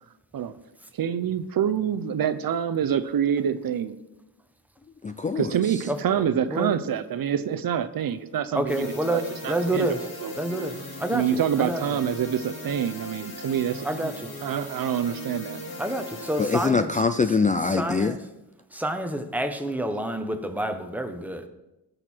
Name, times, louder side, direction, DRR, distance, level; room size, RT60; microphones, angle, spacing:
voice 1, 0.9-4.0 5.4-9.9 10.2-10.3 11.1-14.1 14.4-15.6, right 8 dB, 60° right, 12 dB, 0.7 m, -26 dB
voice 2, 5.0-5.5 16.4-18.2, left 4 dB, 20° left, 10 dB, 0.4 m, -23 dB
voice 3, 8.5-10.0 10.3-10.7 11.0-11.8 13.8-14.3 15.8-16.9 17.7-18.2 18.7-21.5, right 1 dB, 5° right, 6 dB, 1.1 m, -28 dB
sound 1, 8.7-16.7, left 1 dB, 65° left, 3.5 m, -39 dB
17.5 x 6.6 x 4.5 m, 0.99 s
cardioid pair, 105°, 39 cm